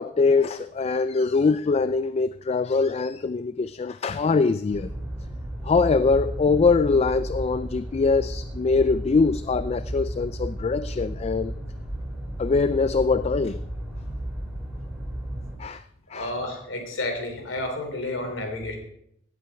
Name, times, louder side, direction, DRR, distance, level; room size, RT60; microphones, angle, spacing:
voice 1, 0.0-4.9 5.6-11.5 12.4-13.6 15.6-15.8 16.1-16.3, left 4 dB, 35° left, 0.3 m, -23 dB
sound 1, 4.7-15.6, right 1 dB, 5° right, 2.8 m, -33 dB
voice 2, 16.1-18.8, left 1 dB, 85° left, 3.2 m, -31 dB
16.5 x 8.5 x 4.6 m
head